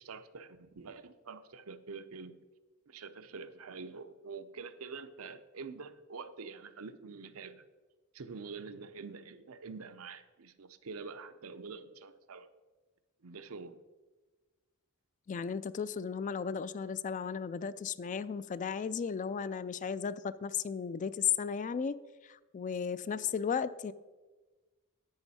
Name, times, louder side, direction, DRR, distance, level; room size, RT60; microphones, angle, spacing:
voice 1, 0.0-2.4 2.9-7.6 8.1-12.5 13.2-13.8, right 4 dB, 80° right, 10 dB, 0.7 m, -46 dB
voice 2, 15.3-23.9, left 7 dB, 35° left, 16 dB, 0.3 m, -35 dB
10.5 x 8.8 x 4.2 m, 1.3 s
head